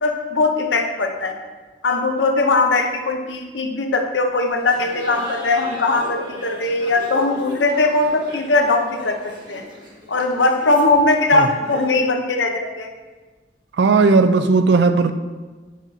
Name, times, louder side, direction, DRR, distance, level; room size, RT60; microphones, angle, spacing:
voice 1, 0.0-1.4 1.8-9.6 10.1-12.9, left 2 dB, 85° left, 4 dB, 0.7 m, -20 dB
Laughter, 4.6-12.1, equal, 25° right, 1.0 m, -37 dB
voice 2, 13.8-15.1, right 4 dB, 70° right, 9 dB, 0.4 m, -15 dB
7.4 x 5.6 x 2.7 m, 1.3 s
head